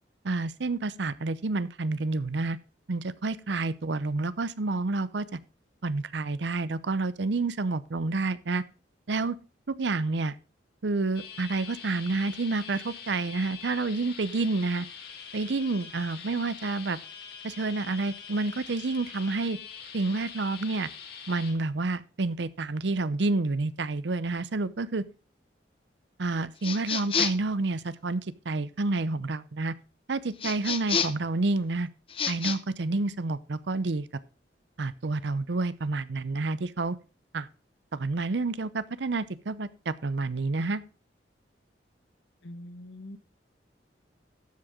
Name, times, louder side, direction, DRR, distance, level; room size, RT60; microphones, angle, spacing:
voice 1, 0.2-2.6 2.9-5.4 5.8-8.6 9.1-9.4 9.7-10.4 10.8-14.9 15.3-17.0 17.4-19.6 19.9-20.9 21.3-25.0 26.2-29.7 30.1-31.9 32.3-34.1 34.8-37.0 37.3-37.5 37.9-40.8, right 3 dB, 75° right, 17 dB, 0.7 m, -29 dB
sound 1, 11.1-21.5, left 7 dB, 60° left, 2.4 m, -44 dB
sound 2, 26.6-27.5 30.4-31.3 32.1-32.6, left 6 dB, 30° left, 0.8 m, -29 dB
voice 2, 42.4-43.2, left 1 dB, 80° left, 9 dB, 1.4 m, -43 dB
12.5 x 7.8 x 3.7 m, 0.35 s
head